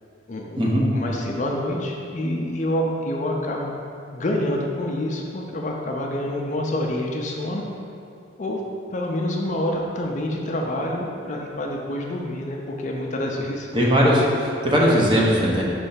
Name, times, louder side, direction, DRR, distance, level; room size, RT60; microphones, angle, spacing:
voice 1, 0.3-3.7 4.1-7.6 8.4-8.6 8.9-13.7, left 1 dB, 40° left, 0 dB, 0.5 m, -27 dB
voice 2, 13.7-15.6, equal, 25° right, -4 dB, 0.8 m, -19 dB
5.2 x 3.3 x 5.6 m, 2.6 s
head